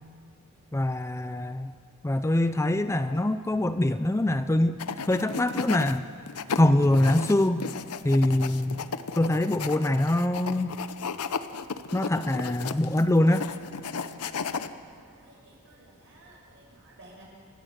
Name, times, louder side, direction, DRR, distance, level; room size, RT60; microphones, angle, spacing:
voice 1, 0.7-1.7 2.0-6.0 6.5-7.6 8.0-8.9 9.2-10.7 11.9-13.5, left 1 dB, 10° left, 10 dB, 0.5 m, -24 dB
sound 1, 4.8-5.9 6.3-14.7, left 5 dB, 85° left, 0.8 m, -34 dB
voice 2, 15.0-17.2, right 2 dB, 55° right, -3 dB, 7.8 m, -54 dB
29.0 x 13.5 x 8.0 m, 2.2 s
head